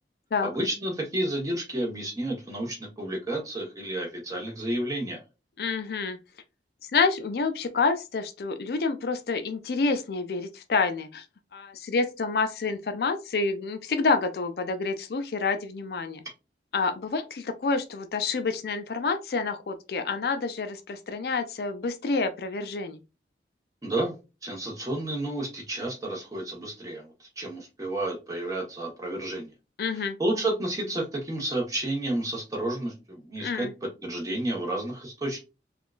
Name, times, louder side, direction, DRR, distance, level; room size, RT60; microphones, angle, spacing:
voice 1, 0.4-5.2 23.8-29.5 29.9-35.4, right 1 dB, 20° right, 1.0 m, -31 dB
voice 2, 5.6-6.2 6.9-11.3 11.5-16.2 16.7-23.0 29.8-30.2 33.4-33.7, left 4 dB, 60° left, 0.4 m, -28 dB
3.6 x 2.4 x 2.4 m
head